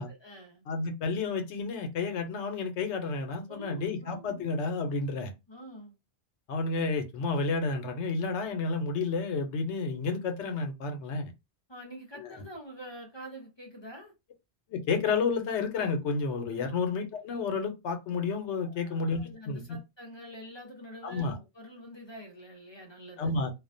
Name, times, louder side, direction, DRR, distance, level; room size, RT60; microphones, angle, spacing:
voice 1, 0.0-0.6 3.5-4.5 5.5-5.9 11.7-14.1 16.5-16.8 18.6-23.3, equal, 30° left, 0.6 m, -46 dB
voice 2, 0.7-5.3 6.5-11.3 12.2-12.3 14.7-19.8 21.0-21.4 23.2-23.5, left 4 dB, 80° left, 0.9 m, -31 dB
2.3 x 2.1 x 2.5 m
omnidirectional pair, 1.2 m